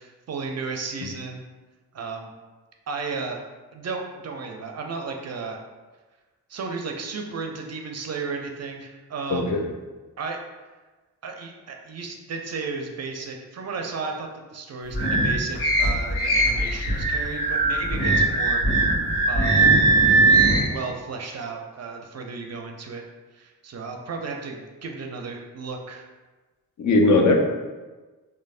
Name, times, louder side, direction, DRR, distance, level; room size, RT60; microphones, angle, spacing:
voice 1, 0.0-1.4 1.9-2.3 2.9-3.4 3.7-5.6 6.5-9.5 10.2-10.4 11.2-18.6 19.3-19.8 20.6-23.0 23.3-26.0, right 4 dB, 40° right, 2 dB, 0.5 m, -34 dB
voice 2, 9.3-9.6 19.6-19.7 26.8-27.4, left 2 dB, 50° left, 2 dB, 0.5 m, -19 dB
sound 1, 14.9-20.6, right 2 dB, 75° left, 1.2 m, -20 dB
3.2 x 2.0 x 2.4 m, 1.3 s
supercardioid pair, 40°, 39 cm